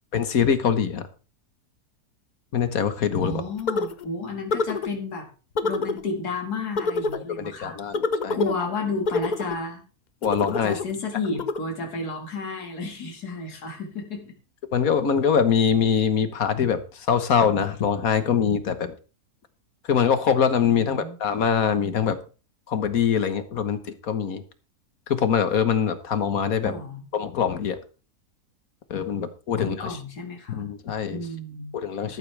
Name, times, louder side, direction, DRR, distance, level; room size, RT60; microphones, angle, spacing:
voice 1, 0.1-1.0 2.5-3.4 7.3-8.4 10.2-10.8 14.7-18.9 19.9-22.2 22.7-24.4 25.1-26.7 27.1-27.8 28.9-30.0 30.5-31.2 31.7-32.2, left 7 dB, 65° left, 10 dB, 1.7 m, -23 dB
voice 2, 3.2-5.3 5.6-7.8 8.3-9.8 10.6-14.3 20.6-21.2 26.6-27.0 29.6-30.7 31.1-31.7 32.1-32.2, left 3 dB, 90° left, 2 dB, 2.6 m, -32 dB
sound 1, 3.7-4.0 4.5-4.9 5.6-6.0 6.8-7.2 7.9-8.6 9.1-9.6 10.2-10.9 11.4-11.6, left 3 dB, 45° left, 0.6 m, -26 dB
13.0 x 12.0 x 3.4 m, 0.36 s
omnidirectional pair, 1.6 m